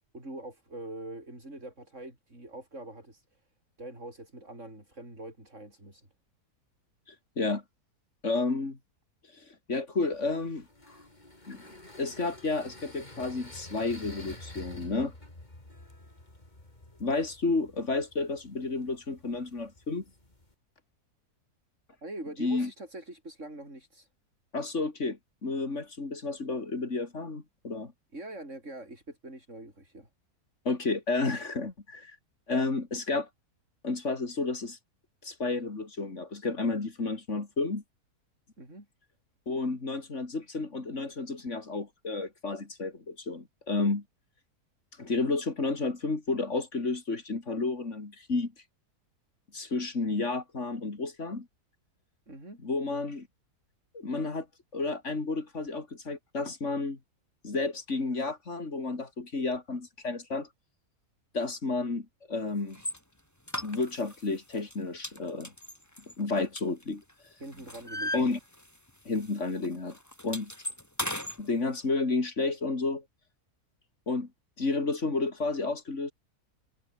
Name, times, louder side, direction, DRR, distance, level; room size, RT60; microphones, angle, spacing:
voice 1, 0.1-3.4 3.8-6.1 22.0-24.1 28.1-30.1 38.6-38.9 52.3-52.6 67.4-68.3, right 1 dB, 50° right, 8.6 m, -43 dB
voice 2, 7.1-7.6 8.2-8.8 9.4-10.7 11.5-11.6 12.0-15.1 17.0-20.0 22.4-22.7 24.5-27.9 30.6-32.2 32.5-33.3 33.8-34.8 35.2-37.8 39.5-44.0 45.0-48.5 49.5-51.5 52.6-53.3 53.9-54.5 54.7-57.0 57.4-60.5 61.3-62.8 63.6-65.5 66.2-67.0 68.1-68.4 69.0-70.0 70.2-70.5 71.4-73.0 74.1-74.3 74.6-76.1, left 3 dB, 50° left, 3.3 m, -31 dB
sound 1, 10.1-20.5, left 1 dB, 25° left, 4.4 m, -50 dB
sound 2, 62.7-63.0 63.5-64.2 64.5-64.8 65.0-67.1 67.4-68.9 69.2-69.4 69.6-71.4, left 1 dB, 10° left, 4.7 m, -37 dB
omnidirectional pair, 1.6 m